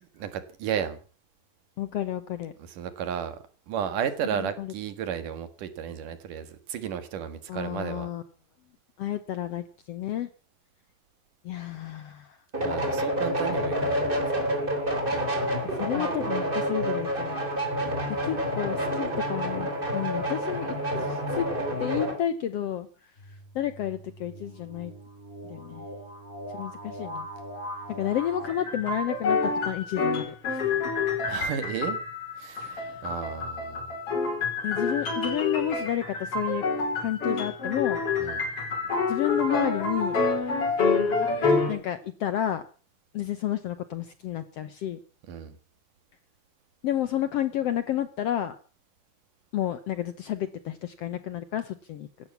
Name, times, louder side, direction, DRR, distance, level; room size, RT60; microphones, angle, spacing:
voice 1, 0.1-1.0 2.6-3.4 3.7-8.1 12.6-14.2 15.1-15.4 17.8-18.2 31.3-32.0 32.4-33.9 38.2-38.4 45.3-45.5, right 8 dB, 75° right, 11 dB, 3.3 m, -33 dB
voice 2, 1.8-2.5 4.4-4.7 7.5-8.2 9.0-10.3 11.4-12.4 15.6-17.4 18.1-21.5 21.8-22.9 23.5-24.9 25.4-25.9 26.5-27.3 27.9-30.6 32.6-33.0 34.6-36.6 37.0-38.0 39.1-40.2 41.7-42.6 43.1-45.0 46.8-48.6 49.5-52.1, left 11 dB, 70° left, 13 dB, 1.5 m, -31 dB
sound 1, 12.5-22.2, equal, 15° right, 3.5 m, -28 dB
sound 2, 23.2-28.5, equal, 15° left, 4.5 m, -41 dB
sound 3, 28.5-41.7, left 4 dB, 45° left, 4.9 m, -28 dB
16.5 x 12.0 x 7.2 m, 0.40 s
omnidirectional pair, 3.8 m